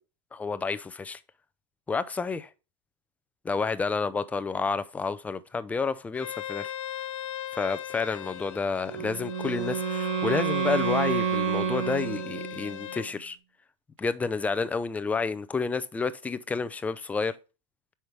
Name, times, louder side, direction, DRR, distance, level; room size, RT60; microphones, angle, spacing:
voice 1, 0.3-1.2 1.9-2.5 3.4-6.7 7.5-13.4 14.0-17.3, left 4 dB, 10° left, 0.5 m, -30 dB
Bowed string instrument, 6.1-13.1, left 11 dB, 75° left, 0.9 m, -38 dB
Wind instrument woodwind instrument, 8.9-12.8, right 7 dB, 85° right, 2.1 m, -29 dB
7.7 x 5.7 x 3.3 m
supercardioid pair, 150°, 16 cm